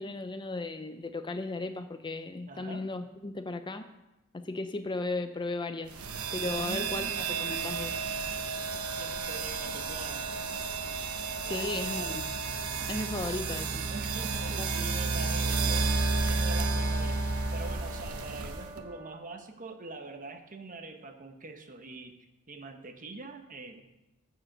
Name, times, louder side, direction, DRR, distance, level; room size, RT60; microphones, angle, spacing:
voice 1, 0.0-3.9 4.3-5.9 6.3-8.0 11.5-12.2 12.9-13.9 14.6-14.9, left 2 dB, 20° left, 9 dB, 0.5 m, -35 dB
voice 2, 2.5-2.9 6.5-7.2 9.0-10.3 11.4-12.2 13.9-15.9 16.3-17.2 17.5-23.8, right 3 dB, 40° right, 6 dB, 1.1 m, -44 dB
sound 1, 5.9-18.8, right 4 dB, 75° right, 1.0 m, -32 dB
Brass instrument, 15.4-19.3, right 1 dB, 10° right, 1.1 m, -48 dB
14.5 x 5.0 x 6.5 m, 0.97 s
head